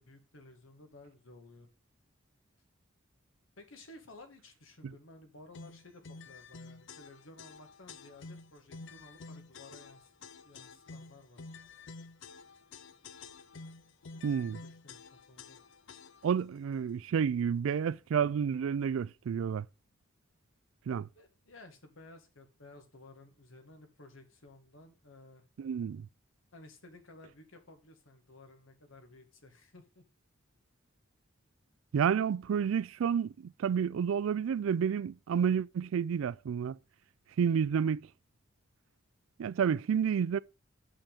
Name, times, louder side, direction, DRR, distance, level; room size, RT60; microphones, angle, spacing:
voice 1, 0.0-1.7 3.6-10.1 10.4-11.4 14.5-15.6 21.1-25.4 26.5-30.0, left 2 dB, 85° left, 1.6 m, -55 dB
sound 1, 5.5-16.4, left 4 dB, 65° left, 0.5 m, -50 dB
voice 2, 14.2-14.6 16.2-19.7 20.9-21.1 25.6-26.1 31.9-36.8 37.4-38.0 39.4-40.4, right 7 dB, 85° right, 0.3 m, -30 dB
6.9 x 5.7 x 5.1 m
head